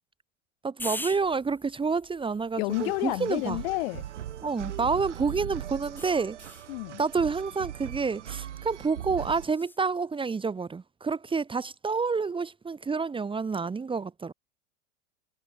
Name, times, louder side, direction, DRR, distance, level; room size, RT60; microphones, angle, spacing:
voice 1, 0.6-3.6 4.4-6.4 7.0-14.3, right 4 dB, 15° right, 2.5 m, -29 dB
sound 1, 0.8-5.2 6.0-6.7 9.5-9.8, left 2 dB, 5° left, 6.7 m, -44 dB
voice 2, 2.6-4.0 6.7-7.0, left 24 dB, 55° left, 5.6 m, -30 dB
sound 2, 2.7-9.4, right 11 dB, 75° right, 2.2 m, -40 dB
hypercardioid pair, 100°, 36 cm